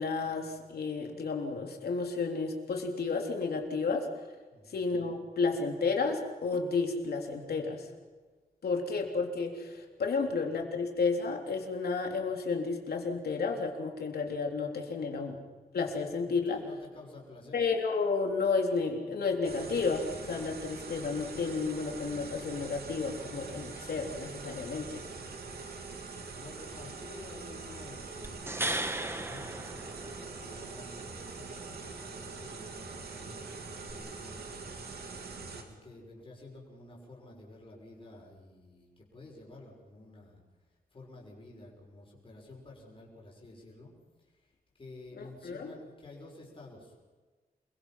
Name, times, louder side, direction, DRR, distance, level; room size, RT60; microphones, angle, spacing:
voice 1, 0.0-4.1 4.7-7.9 8.6-15.4 15.7-16.6 17.5-25.1 45.1-45.7, left 4 dB, 80° left, 2 dB, 3.6 m, -32 dB
voice 2, 15.9-17.6 26.3-40.4 40.9-43.9 44.2-44.5 44.7-47.0, left 2 dB, 35° left, -3 dB, 6.1 m, -51 dB
sound 1, 19.4-35.6, right 4 dB, 85° right, 3.3 m, -43 dB
sound 2, 28.2-30.5 33.9-34.0, right 2 dB, 15° right, 1.3 m, -35 dB
28.0 x 22.5 x 6.0 m, 1.4 s
wide cardioid pair, 165°, 16 cm